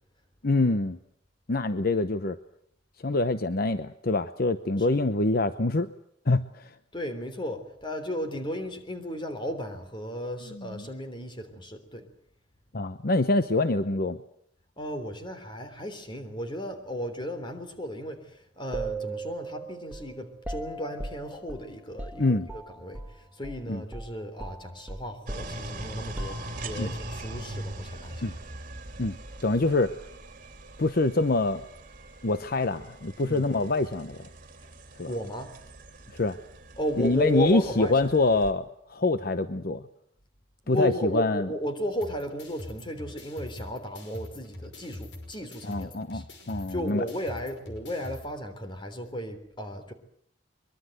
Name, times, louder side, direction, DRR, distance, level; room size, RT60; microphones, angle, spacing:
voice 1, 0.4-1.0 1.5-2.4 3.0-5.9 6.3-6.7 10.5-10.8 12.7-14.2 22.2-22.5 23.7-23.8 26.8-26.9 28.2-28.3 29.0-29.2 29.4-29.9 30.8-31.6 32.2-34.3 35.0-35.1 36.1-36.4 37.0-39.8 40.7-41.5 45.7-47.0, left 2 dB, 55° left, 11 dB, 0.9 m, -25 dB
voice 2, 6.9-12.1 14.8-28.3 33.2-33.5 35.1-35.6 36.8-38.1 40.6-49.9, equal, 25° left, 8 dB, 3.6 m, -34 dB
sound 1, 18.7-23.2 23.4-23.6 23.9-26.9, right 2 dB, 10° right, 1.6 m, -39 dB
sound 2, 25.3-38.5, right 1 dB, 50° right, 3.3 m, -42 dB
sound 3, 42.0-48.2, left 1 dB, 75° left, 5.4 m, -43 dB
23.5 x 22.5 x 8.0 m, 0.69 s
head